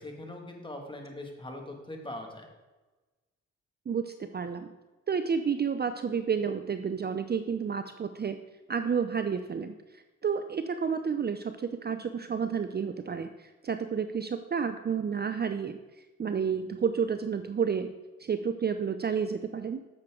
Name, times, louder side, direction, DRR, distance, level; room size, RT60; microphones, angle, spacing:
voice 1, 0.0-2.5, left 1 dB, 15° left, 2 dB, 2.2 m, -41 dB
voice 2, 3.9-4.7 5.1-8.4 8.7-17.9 18.2-19.8, right 6 dB, 35° right, 9 dB, 0.6 m, -31 dB
9.8 x 7.4 x 3.8 m, 1.2 s
supercardioid pair, 65°, 30 cm